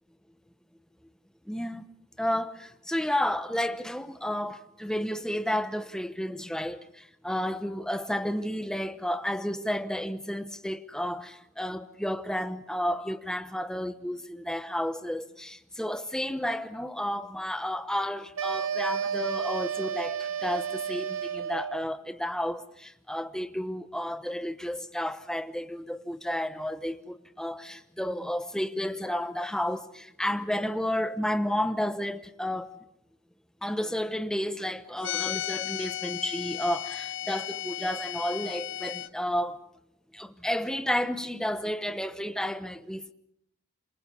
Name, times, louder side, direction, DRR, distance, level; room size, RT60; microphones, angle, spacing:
voice 1, 1.5-1.8 2.2-32.7 33.6-39.6 40.1-43.1, left 1 dB, 5° left, 1.0 m, -32 dB
sound 1, 18.4-21.9, right 7 dB, 80° right, 0.9 m, -32 dB
sound 2, 35.0-39.1, left 12 dB, 60° left, 0.9 m, -34 dB
28.5 x 27.0 x 5.5 m
head